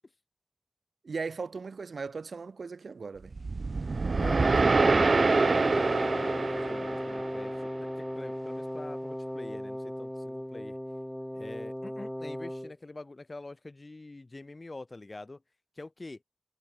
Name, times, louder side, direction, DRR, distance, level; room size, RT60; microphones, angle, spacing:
voice 1, 1.0-3.3, right 4 dB, 80° right, 1.2 m, -37 dB
sound 1, 3.3-7.6, right 3 dB, 60° right, 0.3 m, -26 dB
voice 2, 4.2-10.8 11.3-15.4 15.8-16.2, left 2 dB, 40° left, 3.2 m, -44 dB
Wind instrument woodwind instrument, 4.7-12.7, equal, 5° left, 1.0 m, -35 dB
wide cardioid pair, 75°, 0 cm